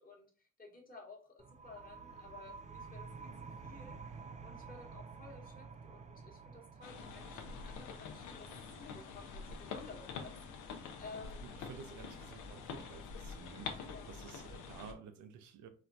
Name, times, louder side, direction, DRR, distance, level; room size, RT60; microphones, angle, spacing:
voice 1, 0.0-3.3 3.6-8.5 8.8-10.6 11.0-11.7 13.8-14.1, left 4 dB, 30° left, 1.1 m, -54 dB
sound 1, 1.4-12.8, right 5 dB, 25° right, 0.3 m, -52 dB
sound 2, 6.8-14.9, left 5 dB, 85° left, 0.6 m, -46 dB
voice 2, 11.1-15.7, right 7 dB, 75° right, 0.6 m, -53 dB
4.3 x 2.2 x 2.5 m
cardioid pair, 90°, 30 cm